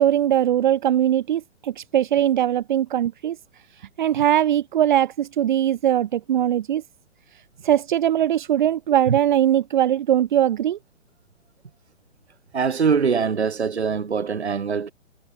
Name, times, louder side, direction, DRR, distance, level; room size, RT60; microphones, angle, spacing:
voice 1, 0.0-3.4 3.8-6.8 7.6-10.8, right 11 dB, 40° right, 1.6 m, -20 dB
voice 2, 12.5-14.9, right 6 dB, 60° right, 3.7 m, -23 dB
figure-of-eight pair, 130°, 36 cm